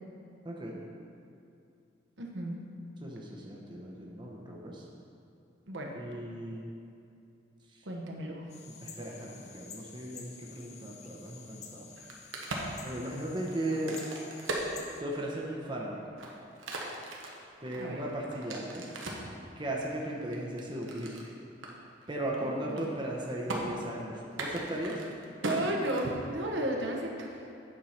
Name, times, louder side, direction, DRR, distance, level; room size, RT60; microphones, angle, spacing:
voice 1, 0.4-0.8 3.0-4.9 5.9-6.7 7.7-7.8 8.8-11.9 12.8-14.0 15.0-16.0 17.6-18.9 19.6-21.3 22.1-25.0, right 1 dB, 25° right, -3 dB, 0.8 m, -37 dB
voice 2, 2.2-2.6 5.7-6.0 7.8-8.5 17.7-18.0 22.4-22.8 25.4-27.4, right 1 dB, 65° right, 0 dB, 1.0 m, -34 dB
sound 1, 8.5-15.0, left 6 dB, 35° left, 0.6 m, -50 dB
Crack, 11.8-15.5 16.0-19.3 19.9-21.3 21.6-21.7 22.0-22.3 22.6-23.1 23.5-23.6 24.3-26.5, right 2 dB, 90° right, 1.2 m, -38 dB
8.9 x 4.6 x 5.6 m, 2.6 s
head